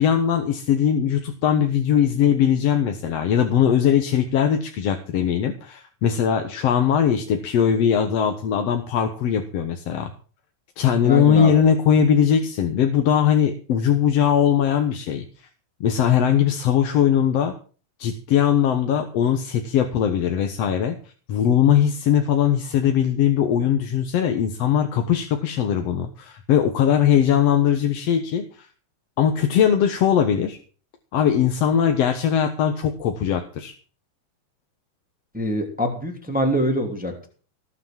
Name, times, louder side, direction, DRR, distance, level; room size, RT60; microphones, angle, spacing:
voice 1, 0.0-10.1 10.8-15.3 15.8-17.5 18.0-21.0 21.3-28.7 29.2-30.6 31.1-33.7, left 8 dB, 60° left, 6 dB, 2.2 m, -20 dB
voice 2, 11.0-11.6 35.3-37.3, equal, 5° right, 2 dB, 2.7 m, -24 dB
18.5 x 6.9 x 7.4 m, 0.40 s
omnidirectional pair, 3.4 m